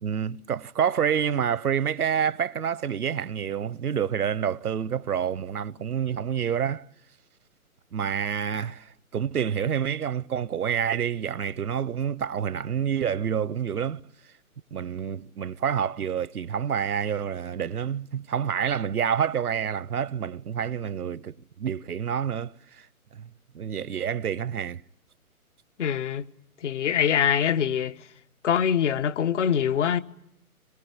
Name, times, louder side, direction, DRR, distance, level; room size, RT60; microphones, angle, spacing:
voice 1, 0.0-6.8 7.9-14.0 14.7-22.9 23.1-23.3 23.5-24.8, right 8 dB, 80° right, 0.9 m, -28 dB
voice 2, 25.8-26.2 26.6-27.9 28.4-30.0, left 8 dB, 50° left, 1.3 m, -24 dB
25.5 x 22.0 x 9.6 m
hypercardioid pair, 145°, 44 cm